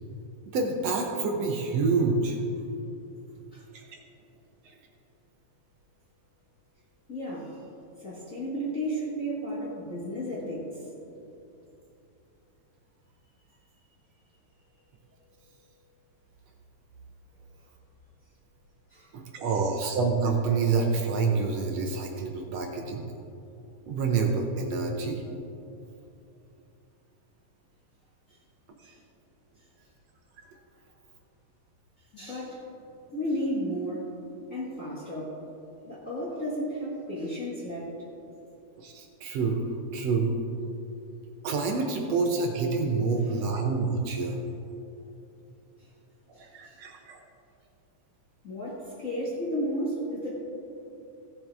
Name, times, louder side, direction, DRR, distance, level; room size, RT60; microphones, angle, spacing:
voice 1, 0.5-2.4 3.7-3.8 4.6-4.7 19.1-23.0 23.9-25.2 38.8-39.7 39.9-40.4 41.4-44.4 46.4-47.2, right 4 dB, 70° right, 2 dB, 1.7 m, -27 dB
voice 2, 7.1-7.6 8.0-10.8 18.9-19.1 28.8-29.0 32.1-32.6 33.1-34.1 34.5-35.4 35.9-37.9 46.6-46.8 48.4-50.4, equal, 40° left, -6 dB, 1.2 m, -33 dB
16.5 x 7.6 x 3.5 m, 2.8 s
omnidirectional pair, 3.8 m